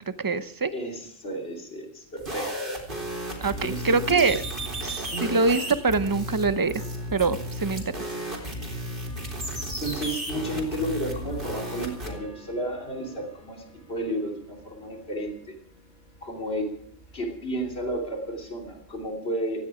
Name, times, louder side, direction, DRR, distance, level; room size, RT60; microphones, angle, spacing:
voice 1, 0.2-0.7 3.4-4.4 4.8-6.8 7.1-7.8, right 4 dB, 25° right, 13 dB, 0.5 m, -24 dB
voice 2, 0.7-2.5 3.6-4.4 5.1-5.4 9.8-15.5 16.2-16.7 17.1-19.7, right 1 dB, 50° left, 2 dB, 3.3 m, -32 dB
sound 1, 2.2-12.1, equal, 45° right, 4.0 m, -34 dB
Bell / Tick-tock, 2.7-19.0, left 1 dB, 70° left, 5.5 m, -50 dB
17.5 x 15.0 x 4.9 m, 0.66 s
omnidirectional pair, 1.3 m